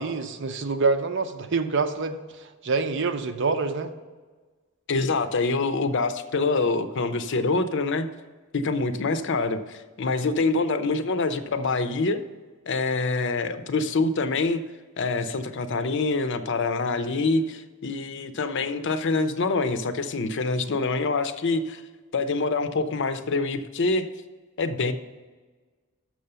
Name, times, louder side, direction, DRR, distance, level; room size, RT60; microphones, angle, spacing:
voice 1, 0.0-3.9, right 4 dB, 55° right, 8 dB, 0.6 m, -26 dB
voice 2, 4.9-8.1 8.5-12.2 12.7-14.6 15.0-21.8 22.1-24.1 24.6-24.9, left 3 dB, 55° left, 11 dB, 0.6 m, -25 dB
6.7 x 6.2 x 6.7 m, 1.3 s
head